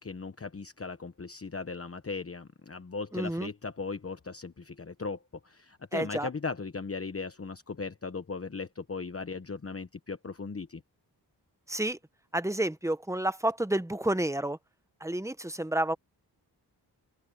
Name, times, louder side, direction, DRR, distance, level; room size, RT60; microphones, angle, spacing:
voice 1, 0.0-10.8, left 4 dB, 35° left, 1.0 m, -38 dB
voice 2, 3.1-3.5 5.9-6.3 11.7-12.0 12.3-14.6 15.0-16.0, right 1 dB, 5° right, 0.9 m, -30 dB
open air
wide cardioid pair, 100°, 41 cm